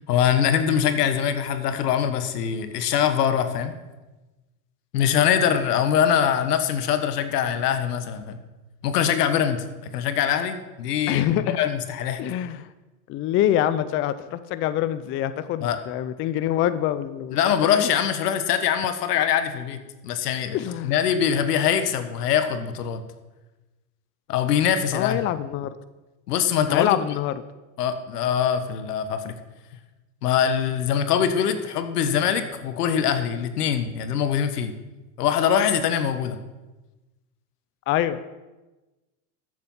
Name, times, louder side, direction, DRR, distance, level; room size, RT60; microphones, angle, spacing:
voice 1, 0.1-3.7 4.9-8.4 8.8-9.6 9.9-12.2 15.6-15.8 17.3-20.6 20.8-23.0 24.3-25.2 26.3-27.0 27.8-29.3 30.2-34.7 35.2-36.4, left 8 dB, 80° left, 9 dB, 1.5 m, -23 dB
voice 2, 11.1-11.6 12.2-12.7 13.1-17.9 20.5-20.9 24.9-25.7 26.7-27.4 37.9-38.2, left 12 dB, 30° left, 14 dB, 0.4 m, -25 dB
13.5 x 7.8 x 5.6 m, 1.1 s
supercardioid pair, 115°, 46 cm